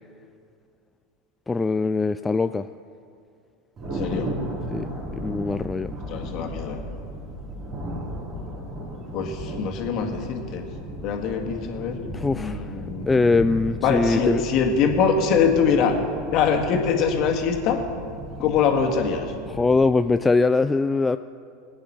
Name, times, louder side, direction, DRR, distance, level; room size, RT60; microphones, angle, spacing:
voice 1, 1.5-2.7 4.7-4.9 5.2-5.9 12.1-12.7 13.1-14.4 19.5-21.2, left 3 dB, 15° left, 10 dB, 0.3 m, -22 dB
Thunder, 3.8-19.8, equal, 35° right, 3.5 m, -35 dB
voice 2, 3.9-4.3 6.1-6.8 9.1-10.6 11.0-12.0 12.4-13.1 13.8-16.0 16.3-17.8 18.4-19.3, left 6 dB, 45° left, 3 dB, 1.9 m, -23 dB
21.0 x 9.6 x 4.4 m, 2.4 s
figure-of-eight pair, 80°, 0 cm